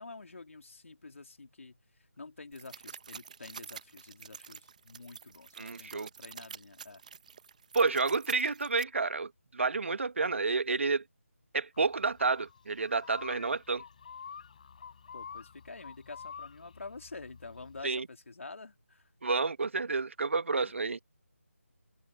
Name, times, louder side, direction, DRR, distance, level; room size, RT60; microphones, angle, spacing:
voice 1, 0.0-1.8 2.2-7.0 15.1-19.0 20.6-20.7, left 3 dB, 65° left, 3.4 m, -48 dB
sound 1, 2.5-8.8, right 7 dB, 30° right, 1.2 m, -48 dB
voice 2, 5.6-6.1 7.7-11.0 11.5-13.8 17.8-18.1 19.2-21.0, right 4 dB, 60° right, 1.3 m, -30 dB
sound 2, 11.7-17.8, left 6 dB, 35° left, 5.3 m, -49 dB
figure-of-eight pair, 170°, 8 cm